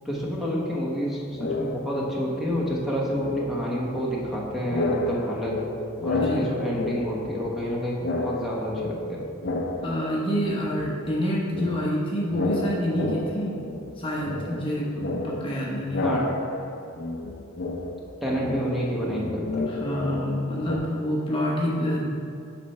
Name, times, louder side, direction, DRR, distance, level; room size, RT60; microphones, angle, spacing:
voice 1, 0.0-5.5 6.0-9.3 16.0-16.2 18.2-19.7, equal, ahead, -5 dB, 1.0 m, -29 dB
sound 1, 1.3-2.2 2.5-4.4 4.6-7.7 8.0-10.5 10.8-20.8, left 2 dB, 50° left, 0.5 m, -31 dB
voice 2, 6.2-6.5 9.8-13.6 14.0-16.0 19.7-22.1, equal, 25° left, -4 dB, 0.9 m, -27 dB
8.4 x 3.4 x 5.4 m, 2.5 s
head